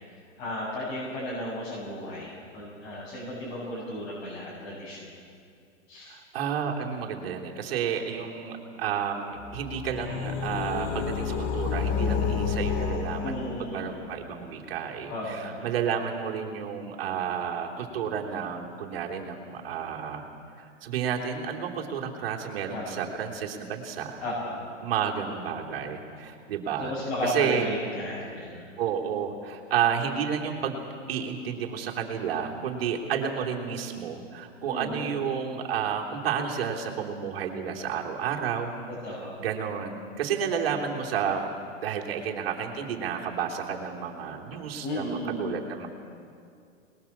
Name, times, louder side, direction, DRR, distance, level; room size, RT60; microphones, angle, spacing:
voice 1, 0.4-5.1 5.9-6.2 13.2-14.1 15.1-15.7 22.7-23.0 24.2-24.6 26.8-28.8 34.7-35.2 38.9-39.4 44.8-45.6, left 1 dB, 55° left, -6 dB, 7.3 m, -34 dB
voice 2, 6.1-20.3 20.6-24.2 24.8-26.9 27.2-27.7 28.8-30.8 31.1-38.8 39.4-41.5 41.8-45.9, right 7 dB, 50° right, 1 dB, 3.3 m, -31 dB
sound 1, 9.4-14.1, left 6 dB, 20° left, 0.8 m, -30 dB
26.0 x 21.0 x 7.3 m, 2.4 s
hypercardioid pair, 160°, 38 cm